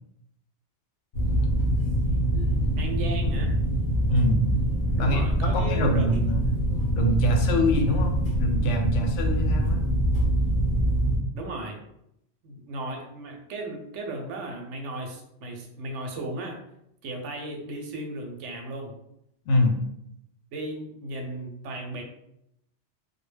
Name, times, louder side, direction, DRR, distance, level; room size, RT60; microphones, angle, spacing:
sound 1, 1.1-11.2, equal, 55° left, 0.7 m, -24 dB
voice 1, 2.8-3.5 5.0-6.2 11.3-11.8 12.4-16.6 17.0-18.9 20.5-22.0, right 2 dB, 85° right, 2 dB, 0.9 m, -35 dB
voice 2, 4.1-4.5 5.0-6.4 7.0-9.8 19.5-19.8, left 1 dB, 85° left, 3 dB, 0.9 m, -25 dB
2.1 x 2.1 x 3.2 m, 0.80 s
omnidirectional pair, 1.2 m